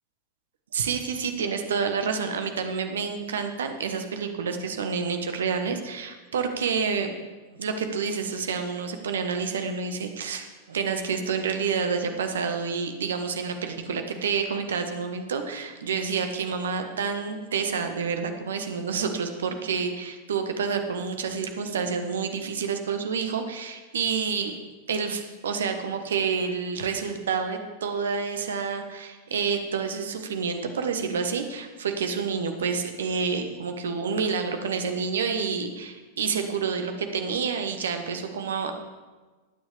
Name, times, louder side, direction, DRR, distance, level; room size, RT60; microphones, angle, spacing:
voice 1, 0.7-7.1 7.5-24.5 24.9-38.7, right 5 dB, 65° right, 6 dB, 1.2 m, -28 dB
20.0 x 9.3 x 3.4 m, 1.3 s
figure-of-eight pair, 90°, 0 cm